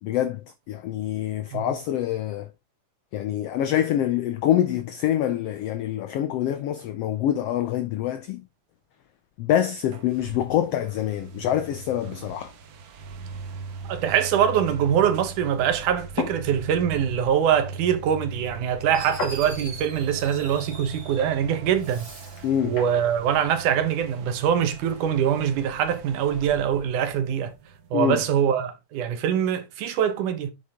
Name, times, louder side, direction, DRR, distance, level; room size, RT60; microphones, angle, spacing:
voice 1, 0.0-2.5 3.1-8.4 9.4-12.5 22.4-22.7 27.9-28.2, left 11 dB, 85° left, 1.3 m, -25 dB
sound 1, 9.9-28.4, right 4 dB, 55° right, 1.4 m, -40 dB
voice 2, 13.9-22.1 22.6-27.5 27.9-30.5, right 9 dB, 80° right, 2.7 m, -23 dB
sound 2, 15.8-23.0, left 5 dB, 55° left, 3.6 m, -39 dB
Fireworks, 18.9-21.4 21.7-22.6, right 2 dB, 20° right, 3.7 m, -42 dB
8.3 x 6.5 x 3.6 m
omnidirectional pair, 3.5 m